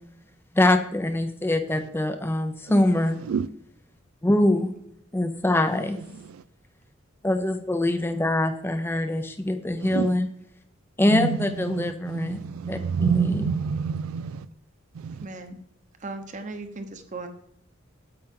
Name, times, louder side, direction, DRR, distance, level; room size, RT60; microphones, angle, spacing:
voice 1, 0.5-3.2 4.2-4.7 5.1-6.0 7.2-10.3 11.0-12.4 12.7-13.4, left 1 dB, 10° left, 0.5 m, -23 dB
voice 2, 5.7-6.4 9.8-10.2 11.1-14.5 14.9-15.3, right 6 dB, 85° right, 0.4 m, -29 dB
voice 3, 15.1-15.6 16.0-17.3, right 3 dB, 35° right, 1.0 m, -37 dB
8.8 x 7.7 x 3.7 m
head